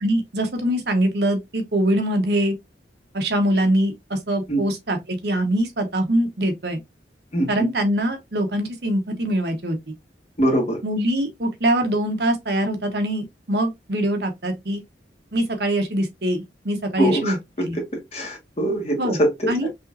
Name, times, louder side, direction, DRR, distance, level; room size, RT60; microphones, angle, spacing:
voice 1, 0.0-2.6 3.1-6.8 7.5-9.9 10.8-14.8 15.3-17.4 17.6-17.8 19.0-19.2 19.5-19.7, right 1 dB, 65° right, 1.1 m, -23 dB
voice 2, 7.3-7.6 10.4-10.8 17.0-17.4 17.7-17.8 18.1-19.7, right 1 dB, 35° left, 1.7 m, -22 dB
5.4 x 3.0 x 2.6 m
head